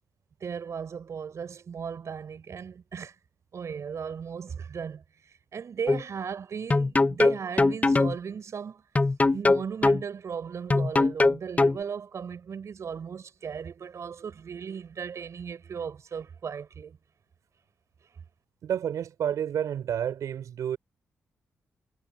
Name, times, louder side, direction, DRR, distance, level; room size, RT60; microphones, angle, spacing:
voice 1, 0.4-3.1 3.5-8.8 9.3-17.0, right 6 dB, 60° right, 6.4 m, -36 dB
sound 1, 5.9-6.0 6.7-8.2 9.0-10.0 10.7-11.8, left 3 dB, 25° left, 1.0 m, -21 dB
voice 2, 18.6-20.8, right 9 dB, 80° right, 5.8 m, -30 dB
cardioid pair, 65°, 6 cm